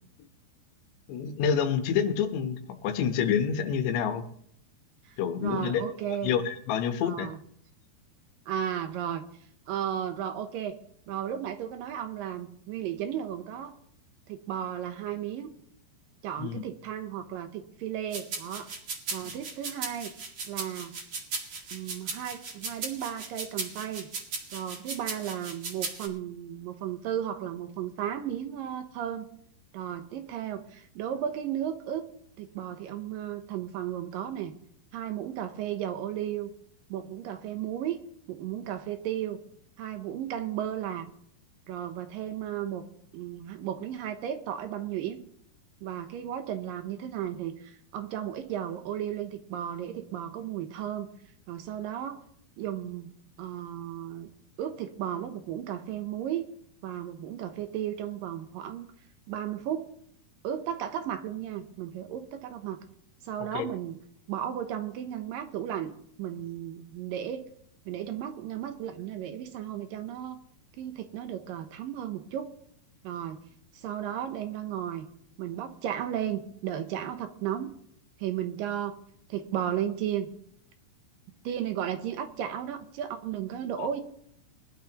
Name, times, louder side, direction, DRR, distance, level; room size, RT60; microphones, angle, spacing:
voice 1, 1.1-4.3 5.2-5.8 6.2-7.3 16.4-16.6 63.5-63.6 83.8-83.9, left 7 dB, 85° left, 6 dB, 3.3 m, -28 dB
voice 2, 5.0-6.3 7.0-7.4 8.5-9.2 9.7-10.8 11.1-13.8 14.3-15.5 16.2-18.7 19.1-20.1 20.4-20.9 21.7-24.1 24.5-29.3 29.7-32.1 32.4-34.5 34.9-36.5 36.9-38.0 38.3-39.4 39.8-41.1 41.7-42.8 43.1-45.2 45.8-51.1 51.5-52.2 52.6-54.3 54.6-56.5 56.8-58.9 59.3-59.9 60.4-62.8 63.2-64.0 64.3-67.4 67.9-70.4 70.8-72.6 73.0-73.4 73.7-75.1 75.4-77.7 78.2-79.0 79.3-80.3 81.4-84.0, right 10 dB, 75° right, 8 dB, 2.2 m, -34 dB
sound 1, 18.1-26.1, right 4 dB, 45° right, 2.2 m, -36 dB
22.0 x 12.0 x 3.0 m, 0.68 s
omnidirectional pair, 4.8 m